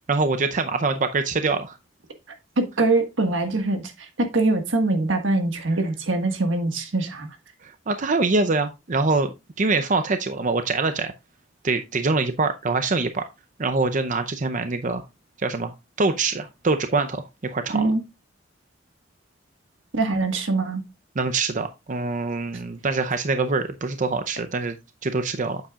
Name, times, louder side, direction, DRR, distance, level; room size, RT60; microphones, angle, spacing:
voice 1, 0.1-1.8 7.6-11.1 11.6-13.2 13.6-15.0 15.4-17.8 21.2-24.8 25.0-25.6, right 3 dB, 40° right, 0.6 m, -24 dB
voice 2, 2.6-7.3 17.7-18.0 19.9-20.8, right 2 dB, 85° right, 1.5 m, -23 dB
8.5 x 7.6 x 2.3 m
head